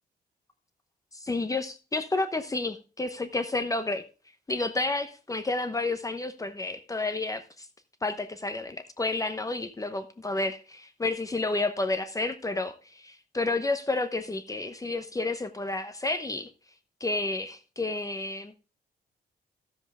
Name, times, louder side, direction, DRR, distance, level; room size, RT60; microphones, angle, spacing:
voice 1, 1.1-4.0 4.5-7.7 8.0-16.5 17.0-18.6, left 2 dB, 20° left, 0.9 m, -30 dB
13.5 x 7.7 x 3.5 m
wide cardioid pair, 130°, 17 cm